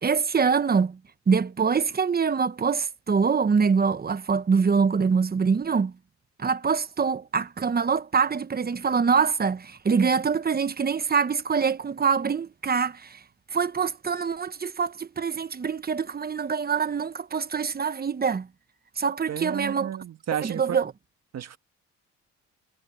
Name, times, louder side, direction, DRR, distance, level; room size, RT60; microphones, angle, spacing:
voice 1, 0.0-1.0 1.3-5.9 6.4-13.2 13.5-18.5 19.0-19.9 20.4-20.9, right 5 dB, 30° right, 1.1 m, -24 dB
voice 2, 19.3-20.8 21.3-21.6, right 9 dB, 60° right, 1.7 m, -32 dB
cardioid pair, 90°, 30 cm